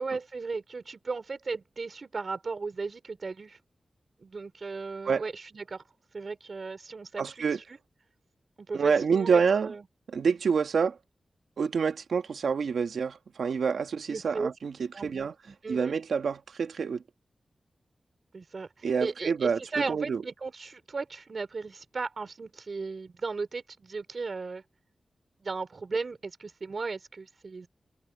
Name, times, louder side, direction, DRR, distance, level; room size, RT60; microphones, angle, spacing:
voice 1, 0.0-3.6 4.2-5.8 6.1-7.8 8.7-9.8 14.1-14.5 14.9-15.9 18.3-24.6 25.4-27.7, right 4 dB, 55° right, 5.0 m, -36 dB
voice 2, 7.2-7.6 8.7-9.7 10.1-11.0 11.6-15.3 15.7-17.0 18.8-19.6 19.9-20.2, right 6 dB, 90° right, 1.7 m, -27 dB
wide cardioid pair, 75°, 0 cm